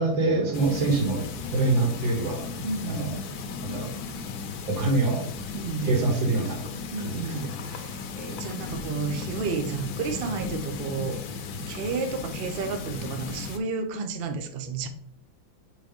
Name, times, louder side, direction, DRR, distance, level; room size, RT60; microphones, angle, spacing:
voice 1, 0.0-2.5 2.9-3.1 3.6-3.9 4.7-5.2 5.8-6.6 7.0-7.2, right 2 dB, 70° right, 2 dB, 2.3 m, -25 dB
sound 1, 0.5-13.6, left 4 dB, 65° left, 1.1 m, -36 dB
voice 2, 2.6-3.2 5.5-6.1 6.9-11.2 11.7-14.9, right 4 dB, 90° right, 7 dB, 0.5 m, -32 dB
4.5 x 4.5 x 5.2 m, 0.63 s
omnidirectional pair, 2.1 m